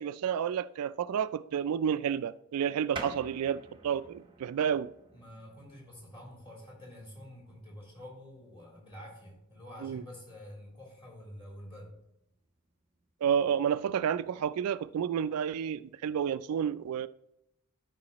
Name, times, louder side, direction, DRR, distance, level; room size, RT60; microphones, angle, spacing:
voice 1, 0.0-4.9 9.8-10.0 13.2-17.1, right 8 dB, 75° right, 0.3 m, -30 dB
sound 1, 2.9-13.1, right 3 dB, 20° right, 0.9 m, -51 dB
voice 2, 5.1-12.0, left 1 dB, 25° left, 3.2 m, -48 dB
12.5 x 4.9 x 3.0 m
head